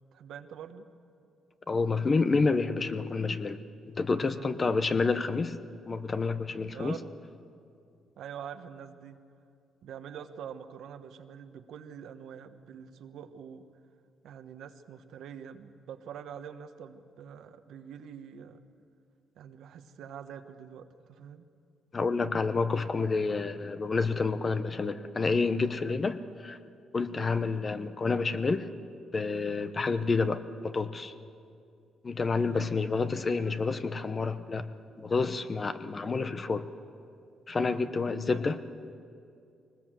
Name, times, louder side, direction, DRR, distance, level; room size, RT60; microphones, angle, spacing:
voice 1, 0.1-0.9 4.1-4.5 6.7-7.2 8.2-9.2 9.8-13.7 14.2-18.6 19.4-21.5 32.5-32.7 37.7-37.9, right 8 dB, 75° right, 8 dB, 1.2 m, -45 dB
voice 2, 1.7-3.6 3.9-5.6 5.9-7.0 21.9-26.6 26.9-28.7 29.1-31.1 32.0-34.7 35.0-36.7 37.5-38.9, left 4 dB, 35° left, 11 dB, 1.0 m, -29 dB
22.0 x 20.0 x 7.6 m, 2.5 s
cardioid pair, 90°, 0 cm